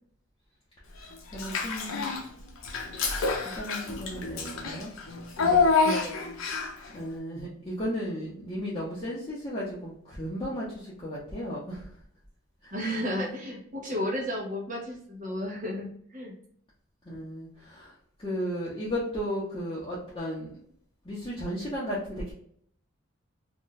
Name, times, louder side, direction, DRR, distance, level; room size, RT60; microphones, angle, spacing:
Child speech kid speaking / Bathtub (filling or washing), 1.3-2.3 2.6-6.9, left 4 dB, 75° left, 0.6 m, -27 dB
voice 1, 1.3-2.1 3.4-4.9 6.9-11.9 12.6-12.7 17.0-17.9 18.2-20.5 21.0-22.3, equal, 20° left, -7 dB, 0.6 m, -34 dB
voice 2, 5.4-6.2 12.7-16.4, equal, 40° right, -1 dB, 0.7 m, -33 dB
2.6 x 2.2 x 3.8 m, 0.64 s
head